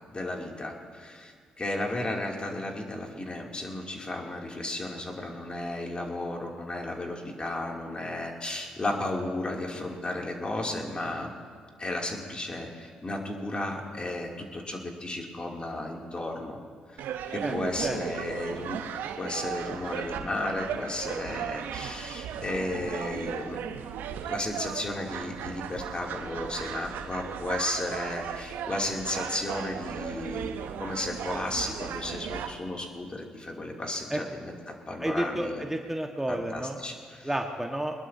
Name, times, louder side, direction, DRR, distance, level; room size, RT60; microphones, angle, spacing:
voice 1, 0.1-11.3 11.8-16.6 16.9-17.0 17.3-18.8 19.2-23.6 24.2-35.6 36.3-37.3, left 1 dB, 30° left, 0 dB, 3.0 m, -34 dB
sound 1, 17.0-32.5, right 8 dB, 65° right, 0.9 m, -36 dB
voice 2, 35.0-36.8 37.2-38.0, right 1 dB, 10° right, 2 dB, 1.6 m, -31 dB
22.0 x 20.5 x 2.9 m, 2.1 s
hypercardioid pair, 45°, 3 cm